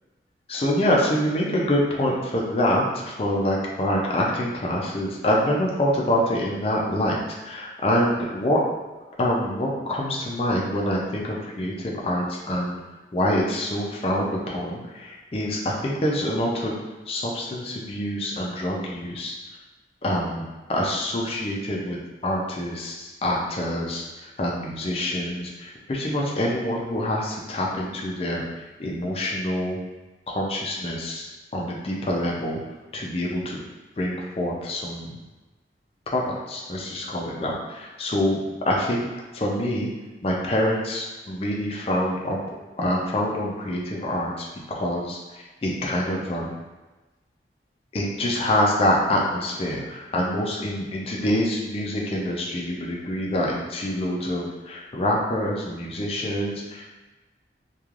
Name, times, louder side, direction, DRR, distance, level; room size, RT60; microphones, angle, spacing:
voice 1, 0.5-7.2 7.4-8.6 9.2-12.8 13.1-16.7 17.1-19.3 20.0-24.0 24.4-28.4 28.8-29.8 30.3-31.3 31.5-32.6 32.9-33.6 34.0-35.1 36.1-38.4 38.7-39.0 39.3-39.9 40.2-42.4 42.8-45.2 45.6-46.6 47.9-56.9, left 1 dB, 35° left, -3 dB, 0.4 m, -26 dB
3.1 x 2.3 x 2.4 m, 1.2 s
head